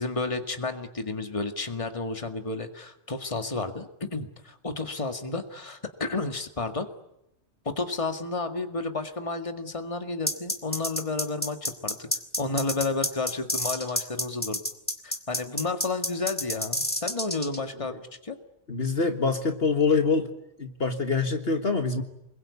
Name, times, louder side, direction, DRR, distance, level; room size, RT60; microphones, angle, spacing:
voice 1, 0.0-6.9 7.7-12.1 12.4-14.6 15.0-18.0 18.2-18.4, left 3 dB, 25° left, 6 dB, 2.0 m, -31 dB
sound 1, 10.3-17.6, equal, 10° left, 2.4 m, -29 dB
voice 2, 18.7-20.3 20.6-22.0, left 4 dB, 55° left, 6 dB, 1.9 m, -25 dB
29.0 x 22.0 x 8.5 m, 0.84 s
omnidirectional pair, 1.2 m